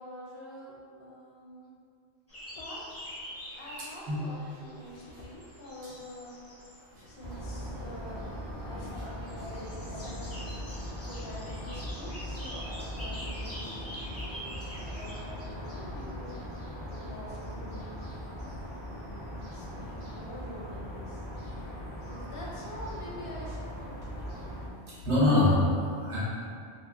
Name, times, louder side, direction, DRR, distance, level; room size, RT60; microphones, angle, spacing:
voice 1, 0.0-1.8 2.6-3.2 3.5-6.4 7.1-8.2 8.6-10.4 11.0-14.3 14.7-16.5 17.0-18.1 18.8-21.3 22.1-24.4, left 1 dB, 65° left, -4 dB, 0.7 m, -46 dB
sound 1, 2.3-15.1, equal, 15° left, 0.6 m, -46 dB
sound 2, 7.2-24.7, equal, 45° right, 0.7 m, -40 dB
voice 2, 24.9-26.2, left 2 dB, 75° right, -10 dB, 1.2 m, -24 dB
2.8 x 2.7 x 2.2 m, 2.4 s
omnidirectional pair, 1.2 m